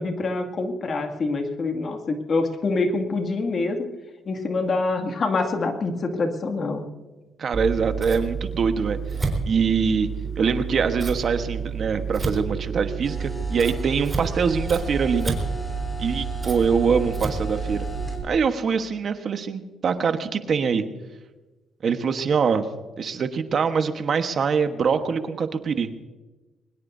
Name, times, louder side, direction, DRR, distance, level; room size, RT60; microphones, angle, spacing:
voice 1, 0.0-3.8 4.3-6.8, left 3 dB, 45° left, 5 dB, 2.3 m, -25 dB
voice 2, 7.4-9.0 9.5-10.1 10.4-15.3 16.0-17.9 18.2-20.8 21.8-22.7 23.0-25.9, right 6 dB, 50° right, 8 dB, 1.3 m, -23 dB
Scissors, 7.5-18.2, right 6 dB, 20° right, 4.0 m, -30 dB
sound 1, 13.0-18.2, left 2 dB, 10° left, 4.7 m, -36 dB
22.5 x 20.5 x 2.7 m, 1.2 s
cardioid pair, 90°, 0 cm